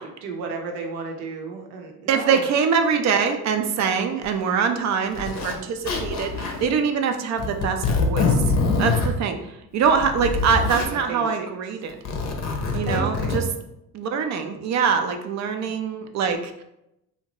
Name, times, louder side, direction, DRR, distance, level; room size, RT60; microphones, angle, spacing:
voice 1, 0.2-2.4 11.1-11.3 12.7-13.3 15.6-15.8, right 4 dB, 80° right, 2 dB, 0.8 m, -33 dB
voice 2, 2.1-8.3 8.8-12.0 12.7-13.4 13.9-16.6, right 6 dB, 40° right, 6 dB, 0.4 m, -24 dB
Zipper (clothing), 4.2-4.3 5.1-5.6 5.8-6.7 7.4-9.1 9.8-10.9 11.9-13.4, left 4 dB, 40° left, 0.6 m, -24 dB
2.7 x 2.1 x 2.9 m, 0.84 s
supercardioid pair, 80°, 45 cm